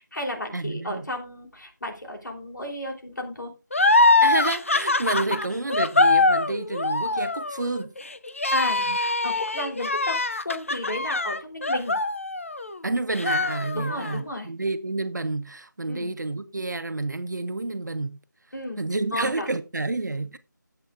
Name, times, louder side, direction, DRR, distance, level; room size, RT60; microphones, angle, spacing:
voice 1, 0.0-3.5 8.5-10.2 10.4-11.9 13.7-14.5 15.9-16.1 18.5-18.8 19.1-19.5, left 1 dB, 70° left, 3.4 m, -33 dB
voice 2, 0.5-1.1 4.2-7.9 8.8-9.0 12.8-18.2 18.8-20.4, right 2 dB, 65° right, 1.1 m, -29 dB
sound 1, 3.7-12.8 13.1-14.2, left 2 dB, 40° left, 0.5 m, -23 dB
16.5 x 8.0 x 2.4 m
figure-of-eight pair, 175°, 10 cm